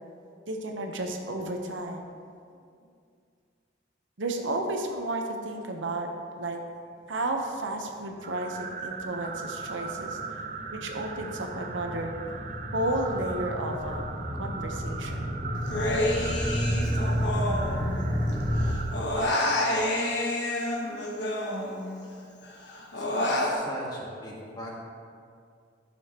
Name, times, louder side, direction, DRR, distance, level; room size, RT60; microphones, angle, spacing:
voice 1, 0.5-2.0 4.2-6.1 6.4-6.6 7.1-10.4 10.7-12.1 12.7-14.1 14.3-15.2, right 2 dB, 85° right, 3 dB, 0.9 m, -32 dB
sound 1, 8.2-21.6, right 5 dB, 45° right, 0.5 m, -40 dB
sound 2, 8.4-18.7, equal, ahead, 0.7 m, -32 dB
Human voice, 15.7-18.3 18.6-22.1 22.4-23.5, left 1 dB, 65° left, 1.2 m, -29 dB
voice 2, 22.9-24.8, equal, 20° left, -4 dB, 1.6 m, -41 dB
12.0 x 7.0 x 2.9 m, 2.3 s
head